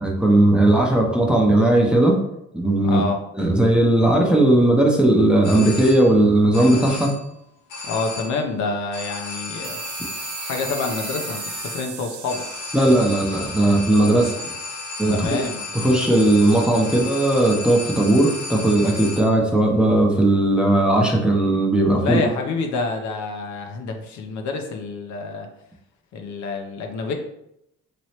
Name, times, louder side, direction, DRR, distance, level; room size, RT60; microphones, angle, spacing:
voice 1, 0.0-2.2 2.5-3.0 3.3-7.1 12.7-14.4 15.0-15.3 15.7-22.2, right 1 dB, 5° right, -1 dB, 0.6 m, -17 dB
voice 2, 2.8-3.2 7.8-9.8 10.4-12.4 15.1-15.7 22.0-25.5 26.1-27.1, left 3 dB, 70° left, 3 dB, 0.7 m, -27 dB
sound 1, 5.4-6.3 6.5-7.3 7.7-8.5 8.9-19.5, left 3 dB, 90° left, 1.0 m, -34 dB
sound 2, 9.6-14.8, right 9 dB, 75° right, 0.5 m, -37 dB
3.1 x 3.0 x 2.8 m, 0.79 s
cardioid pair, 90°, 30 cm